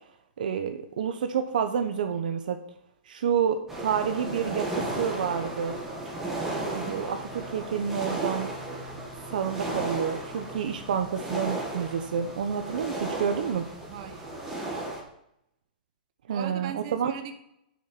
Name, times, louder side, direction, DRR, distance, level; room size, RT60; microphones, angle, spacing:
voice 1, 0.4-2.6 3.1-4.7 5.0-5.7 6.7-8.5 9.3-13.7 16.3-17.1, right 7 dB, 65° right, 7 dB, 0.9 m, -29 dB
sound 1, 3.7-15.0, right 2 dB, 5° right, 1.5 m, -34 dB
voice 2, 13.9-14.4 16.3-17.3, right 8 dB, 40° right, 7 dB, 1.1 m, -39 dB
7.4 x 6.4 x 7.1 m, 0.77 s
hypercardioid pair, 175°, 5 cm